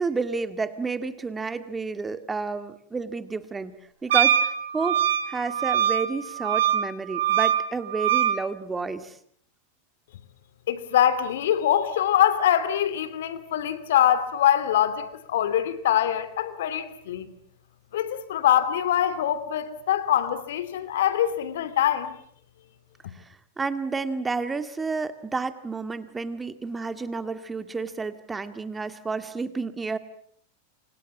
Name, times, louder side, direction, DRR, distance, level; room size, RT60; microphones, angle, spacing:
voice 1, 0.0-3.8 4.0-5.0 5.3-9.2 23.2-23.3 23.6-30.0, right 4 dB, 15° right, 2.1 m, -30 dB
Wind instrument woodwind instrument, 4.1-8.4, right 10 dB, 75° right, 2.6 m, -23 dB
voice 2, 10.7-17.3 17.9-22.1 23.0-23.1, left 10 dB, 70° left, 2.8 m, -24 dB
29.5 x 26.0 x 7.4 m
hypercardioid pair, 100°, 0 cm